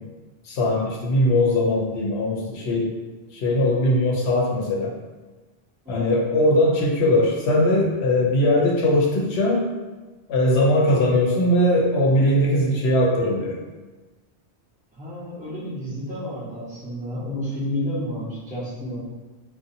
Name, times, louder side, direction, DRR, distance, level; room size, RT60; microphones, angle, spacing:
voice 1, 0.5-2.9 3.3-4.9 5.9-9.7 10.3-13.6, left 1 dB, 85° left, -2 dB, 0.8 m, -20 dB
voice 2, 5.8-6.2 14.9-19.0, equal, 10° right, -9 dB, 0.6 m, -31 dB
2.6 x 2.1 x 2.6 m, 1.2 s
omnidirectional pair, 1.1 m